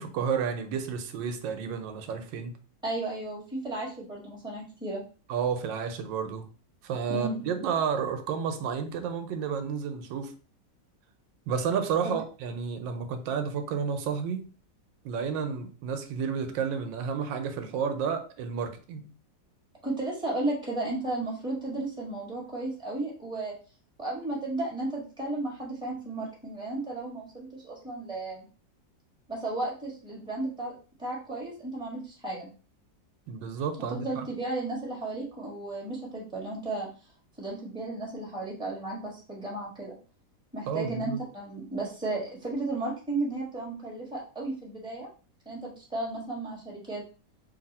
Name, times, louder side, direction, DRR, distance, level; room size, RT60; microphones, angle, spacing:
voice 1, 0.0-2.6 5.3-6.5 6.8-10.3 11.5-14.5 15.0-19.0 33.3-34.3 40.6-41.2, right 6 dB, 90° right, 7 dB, 1.3 m, -31 dB
voice 2, 2.8-5.0 7.1-7.4 12.0-12.1 19.8-23.5 24.0-28.5 29.3-30.7 31.0-32.5 33.9-36.9 37.4-39.9 40.5-45.1 45.4-47.0, right 2 dB, 5° right, -2 dB, 1.2 m, -34 dB
3.3 x 2.6 x 4.1 m, 0.36 s
omnidirectional pair, 1.9 m